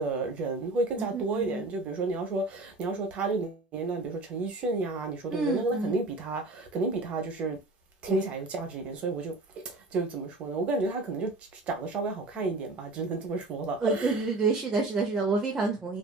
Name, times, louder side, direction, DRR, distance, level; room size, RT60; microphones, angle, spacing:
voice 1, 0.0-7.6 8.0-9.3 9.6-11.3 11.7-14.1, right 3 dB, 30° right, 0.8 m, -31 dB
voice 2, 1.0-1.7 5.3-6.0 8.1-8.2 13.8-16.0, right 3 dB, 15° right, 0.4 m, -28 dB
2.6 x 2.5 x 2.2 m
supercardioid pair, 150°, 4 cm